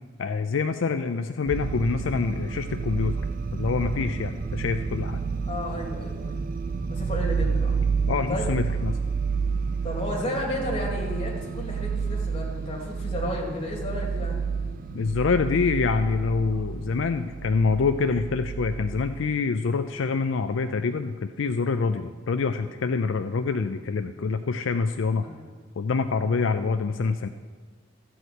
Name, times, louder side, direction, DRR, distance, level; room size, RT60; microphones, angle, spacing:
voice 1, 0.2-3.1 3.5-5.2 8.1-8.9 14.9-25.3 25.8-27.3, left 4 dB, 75° left, 8 dB, 0.4 m, -26 dB
sound 1, 1.5-19.4, right 5 dB, 45° right, 0.5 m, -30 dB
voice 2, 5.5-6.4 6.9-7.8 8.3-8.5 9.8-14.4 25.1-25.4, left 1 dB, 30° left, -2 dB, 2.3 m, -32 dB
13.5 x 4.7 x 8.1 m, 1.6 s
head